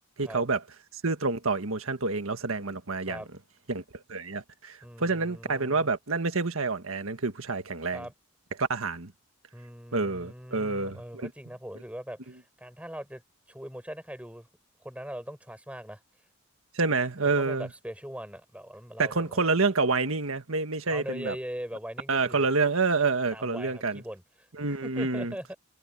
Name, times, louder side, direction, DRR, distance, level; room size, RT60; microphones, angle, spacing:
voice 1, 0.2-0.6 1.0-3.2 3.7-3.8 4.1-8.0 8.6-9.1 9.9-11.3 16.7-17.7 19.0-21.3 22.1-24.0 24.6-25.3, right 3 dB, 75° right, 1.6 m, -28 dB
voice 2, 4.8-6.0 7.9-8.1 9.5-13.2 13.5-14.5 14.8-16.0 17.2-19.5 20.9-22.5 23.3-25.6, equal, 5° right, 6.1 m, -41 dB
head